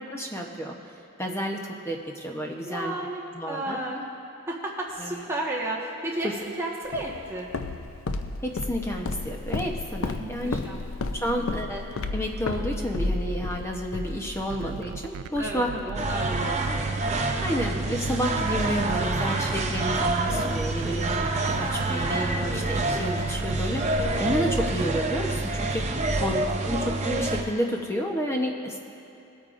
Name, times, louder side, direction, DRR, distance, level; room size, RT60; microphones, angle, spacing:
voice 1, 0.1-0.8 1.2-3.0 3.3-3.8 5.0-5.2 6.2-6.3 8.4-10.6 11.1-11.8 12.1-15.7 16.6-16.8 17.4-28.8, equal, 10° left, 1 dB, 0.9 m, -30 dB
voice 2, 2.6-4.0 4.4-7.5 10.2-10.8 11.3-11.6 15.4-17.0 26.1-26.5, right 1 dB, 10° right, -4 dB, 1.4 m, -33 dB
Walk footsteps, 6.9-14.8, left 3 dB, 65° left, 0.5 m, -32 dB
sound 1, 14.4-24.8, right 5 dB, 85° right, 0.3 m, -37 dB
sound 2, 15.9-27.4, right 2 dB, 30° right, 0.7 m, -27 dB
20.0 x 8.8 x 2.6 m, 2.9 s
head